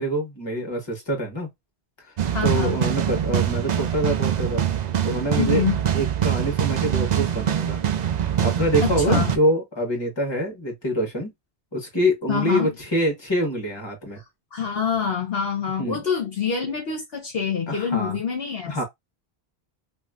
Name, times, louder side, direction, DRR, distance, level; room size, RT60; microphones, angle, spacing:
voice 1, 0.0-1.5 2.0-2.1 2.4-4.6 5.0-5.6 5.9-7.8 8.4-11.3 11.7-14.2 15.8-16.0 17.7-18.2 18.7-18.8, equal, 25° left, 1.4 m, -25 dB
sound 1, 2.2-9.4, right 10 dB, 50° right, 0.5 m, -24 dB
voice 2, 2.3-2.8 5.3-5.8 8.9-9.3 12.3-12.7 14.5-18.8, left 7 dB, 65° left, 1.1 m, -26 dB
3.0 x 2.8 x 2.3 m
omnidirectional pair, 1.1 m